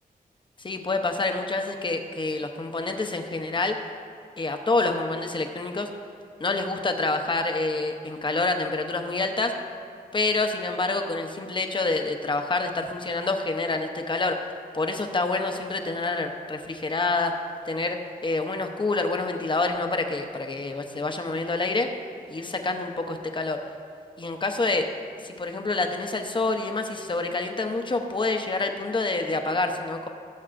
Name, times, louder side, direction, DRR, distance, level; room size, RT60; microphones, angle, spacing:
voice 1, 0.6-3.8 4.4-5.9 6.4-9.5 10.1-17.3 17.6-18.0 18.2-21.9 22.3-23.6 24.2-24.9 25.2-30.1, left 3 dB, 30° left, 5 dB, 0.7 m, -27 dB
16.5 x 7.3 x 2.5 m, 2.4 s
wide cardioid pair, 130°, 16 cm